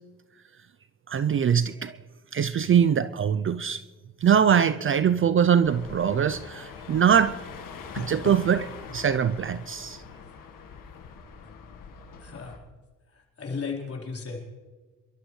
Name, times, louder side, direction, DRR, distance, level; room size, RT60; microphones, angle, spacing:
voice 1, 1.1-2.0 2.3-3.8 4.2-7.4 7.9-10.0, right 8 dB, 40° right, 14 dB, 0.5 m, -22 dB
sound 1, 5.6-12.6, left 6 dB, 65° left, 1.6 m, -42 dB
voice 2, 12.2-12.6 13.1-14.4, left 5 dB, 40° left, -1 dB, 4.1 m, -35 dB
28.0 x 12.5 x 3.2 m, 1.3 s
cardioid pair, 75°, 34 cm